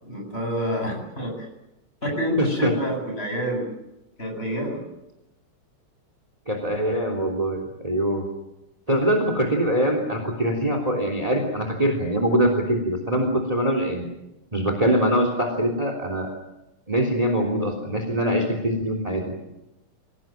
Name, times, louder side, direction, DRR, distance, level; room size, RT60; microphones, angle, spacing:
voice 1, 0.0-1.5 2.0-3.7 4.2-4.8, equal, 25° left, 2 dB, 8.2 m, -28 dB
voice 2, 2.4-2.7 6.5-8.3 8.9-14.1 14.5-16.3 16.9-19.2, right 1 dB, 15° right, 5 dB, 3.3 m, -23 dB
26.5 x 18.0 x 9.1 m, 0.92 s
omnidirectional pair, 2.4 m